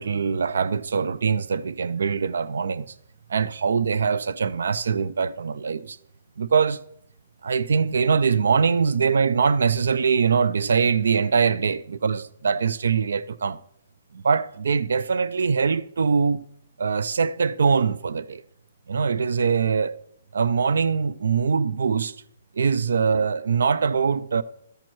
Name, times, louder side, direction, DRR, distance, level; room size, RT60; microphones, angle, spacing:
voice 1, 0.0-2.9 3.3-6.0 6.4-6.8 7.4-13.6 14.1-16.5 16.8-18.4 18.9-19.9 20.3-22.2 22.6-24.4, right 5 dB, 80° right, 0.3 m, -23 dB
12.5 x 4.4 x 4.5 m
hypercardioid pair, 175°, 0 cm